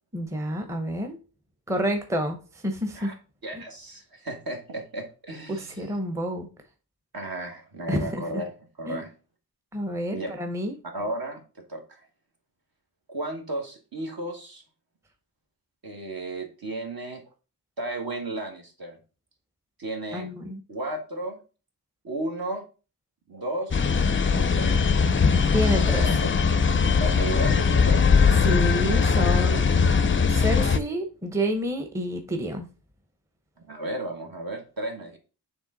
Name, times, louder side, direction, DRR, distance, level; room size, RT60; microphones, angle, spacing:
voice 1, 0.1-1.2 1.7-3.1 3.5-3.6 5.5-6.5 7.9-8.4 8.9-9.1 9.7-10.7 20.1-20.6 25.5-26.1 28.3-29.6 30.3-32.7, equal, 5° right, 5 dB, 0.7 m, -29 dB
voice 2, 3.4-5.9 7.1-8.5 8.8-9.1 10.1-10.3 10.9-11.4 11.7-12.0 13.1-14.6 15.8-17.2 17.8-19.0 19.8-20.2 20.7-21.4 22.0-22.6 23.3-23.8 24.3-25.5 26.0-26.4 27.0-28.0 33.6-35.2, right 1 dB, 60° right, 2 dB, 1.5 m, -34 dB
sound 1, 23.7-30.8, left 5 dB, 30° left, 0.4 m, -20 dB
7.9 x 3.2 x 3.8 m, 0.35 s
wide cardioid pair, 95°, 41 cm